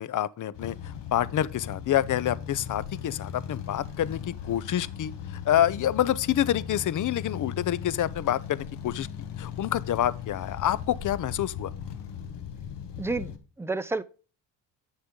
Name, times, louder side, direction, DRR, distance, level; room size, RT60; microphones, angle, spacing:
voice 1, 0.0-11.7, left 11 dB, 45° left, 0.5 m, -27 dB
sound 1, 0.5-13.4, left 8 dB, 65° left, 1.4 m, -38 dB
voice 2, 13.0-14.0, right 3 dB, 5° right, 0.5 m, -30 dB
8.2 x 6.6 x 3.7 m
cardioid pair, 80°, 44 cm